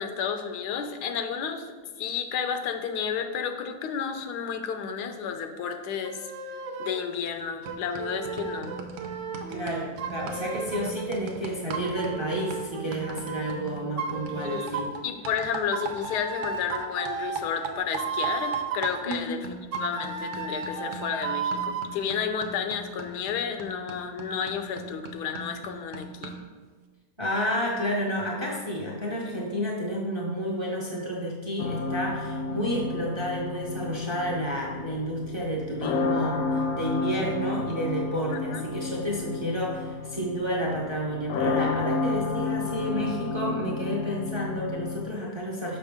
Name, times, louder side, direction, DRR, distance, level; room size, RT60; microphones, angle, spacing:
voice 1, 0.0-1.7 2.0-6.2 6.8-8.8 14.4-14.7 15.0-26.4 38.3-38.6, left 7 dB, 85° left, 7 dB, 1.2 m, -31 dB
sound 1, 6.0-7.1 7.6-11.1 11.7-13.6 14.0-15.0 15.7-19.0 19.7-21.9, right 5 dB, 65° right, 0.8 m, -34 dB
sound 2, 7.1-7.4 7.7-16.8 17.1-26.5, right 4 dB, 90° right, 1.3 m, -41 dB
voice 2, 9.5-14.9 19.1-19.4 27.2-45.8, equal, 25° right, -2 dB, 0.6 m, -30 dB
sound 3, 31.6-45.0, left 3 dB, 65° left, 1.0 m, -31 dB
6.3 x 5.6 x 3.5 m, 1.4 s
omnidirectional pair, 1.7 m